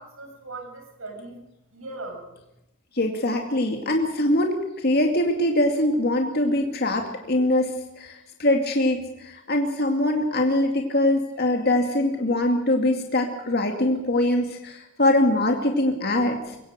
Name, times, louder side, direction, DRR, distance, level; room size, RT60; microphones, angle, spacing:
voice 1, 0.0-1.4 1.7-2.4, right 2 dB, 85° right, 3 dB, 7.2 m, -39 dB
voice 2, 2.9-16.6, left 1 dB, 50° left, 3 dB, 2.3 m, -23 dB
23.0 x 17.0 x 6.7 m, 0.92 s
head